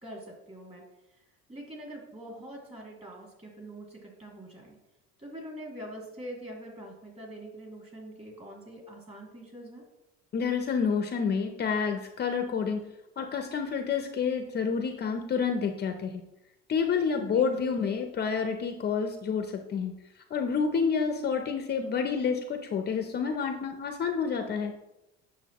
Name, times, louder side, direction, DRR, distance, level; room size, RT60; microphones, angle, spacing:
voice 1, 0.0-1.2 1.5-4.8 5.2-9.8 17.1-17.5, right 1 dB, 20° right, -1 dB, 2.4 m, -44 dB
voice 2, 10.3-12.8 13.2-16.2 16.7-19.9 20.3-24.7, left 6 dB, 30° left, 5 dB, 0.6 m, -29 dB
9.1 x 6.5 x 3.0 m, 0.93 s
cardioid pair, 130°, 32 cm